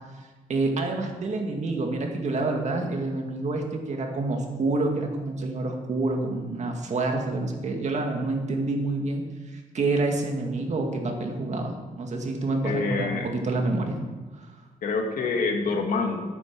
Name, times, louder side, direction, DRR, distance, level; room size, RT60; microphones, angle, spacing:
voice 1, 0.5-9.2 9.5-14.0 14.4-14.5, right 2 dB, 55° right, 3 dB, 2.1 m, -28 dB
voice 2, 12.6-13.3 14.8-16.2, left 4 dB, 90° left, 3 dB, 1.8 m, -26 dB
12.0 x 9.1 x 6.1 m, 1.3 s
wide cardioid pair, 125°, 14 cm